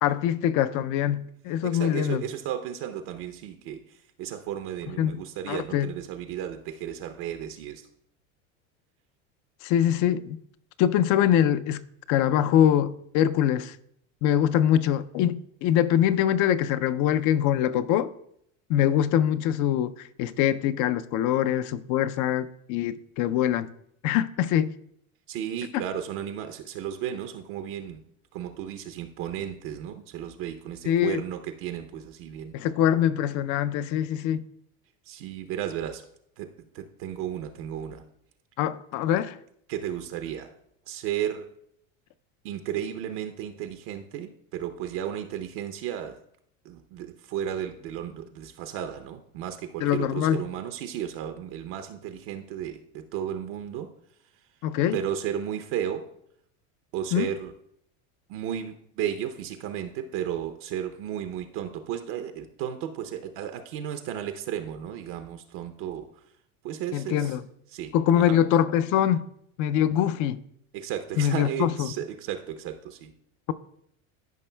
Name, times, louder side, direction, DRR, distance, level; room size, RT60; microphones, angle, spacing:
voice 1, 0.0-2.2 5.0-5.2 5.5-5.9 9.6-10.4 10.8-11.8 12.1-13.8 14.2-18.1 18.7-23.7 24.0-24.8 30.9-31.2 32.5-34.4 38.6-39.4 49.8-50.4 54.6-55.0 57.1-57.3 66.9-67.4 67.9-69.2 69.6-70.4 71.2-71.9, left 10 dB, 50° left, 0.5 m, -23 dB
voice 2, 1.6-7.9 25.3-28.0 28.3-32.6 35.1-36.1 36.4-38.0 39.7-40.5 40.9-41.5 42.4-46.2 46.6-53.9 54.9-56.1 56.9-57.5 58.3-66.1 66.6-67.4 67.7-68.4 70.7-73.1, right 10 dB, 60° right, 0.7 m, -34 dB
13.0 x 5.3 x 2.2 m
supercardioid pair, 110°, 39 cm